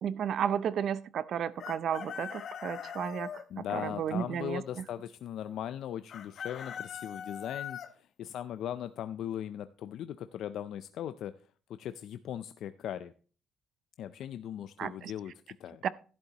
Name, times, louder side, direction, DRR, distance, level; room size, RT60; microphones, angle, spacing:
voice 1, 0.0-4.6 14.8-15.1 15.8-15.9, right 8 dB, 55° right, 17 dB, 0.4 m, -33 dB
Chicken rooster, 1.6-3.4 6.1-7.9, left 8 dB, 50° left, 0.9 m, -41 dB
voice 2, 3.5-11.3 11.7-13.1 14.0-15.9, left 10 dB, 65° left, 11 dB, 0.4 m, -39 dB
11.5 x 11.0 x 2.9 m, 0.39 s
cardioid pair, 150°, 0 cm